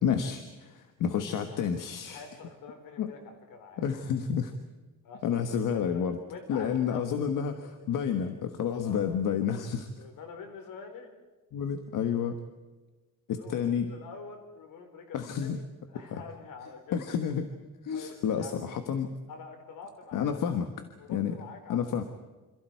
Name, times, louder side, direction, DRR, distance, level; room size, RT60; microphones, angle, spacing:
voice 1, 0.0-2.2 3.0-3.1 3.8-4.5 5.2-6.2 6.5-9.9 11.5-12.4 13.3-13.9 15.1-15.6 16.1-16.2 16.9-17.5 17.8-19.1 20.1-20.7 21.1-21.3 21.7-22.0, left 7 dB, 75° left, 7 dB, 1.5 m, -30 dB
voice 2, 2.1-3.8 5.0-8.0 8.8-9.1 10.0-11.1 13.3-17.1 17.9-18.6 19.3-20.6 21.0-22.0, left 5 dB, 90° left, 5 dB, 4.5 m, -47 dB
27.5 x 27.0 x 4.7 m, 1.2 s
cardioid pair, 165°, 32 cm